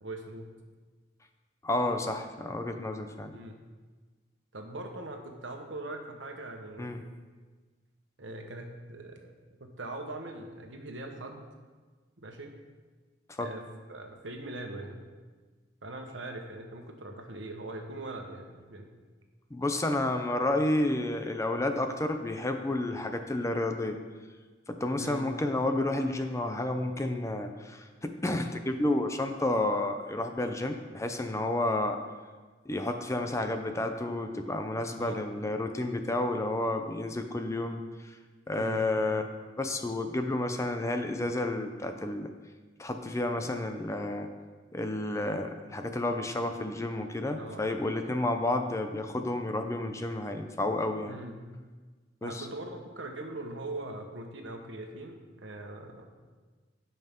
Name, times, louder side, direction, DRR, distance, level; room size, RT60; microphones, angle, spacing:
voice 1, 0.0-0.5 3.3-3.6 4.5-6.9 8.2-9.3 9.6-11.4 12.2-12.6 13.4-15.1 15.8-18.9 25.0-25.3 35.0-35.3 38.5-38.8 47.4-47.6 51.1-51.4 52.2-56.1, right 2 dB, 75° right, 3 dB, 1.3 m, -41 dB
voice 2, 1.6-3.3 6.8-7.0 13.3-13.5 19.5-24.0 24.7-32.0 32.7-38.2 38.5-39.3 39.6-42.3 42.8-44.3 44.7-51.1 52.2-52.5, left 2 dB, 15° left, 6 dB, 0.5 m, -31 dB
16.0 x 5.6 x 3.7 m, 1.4 s
head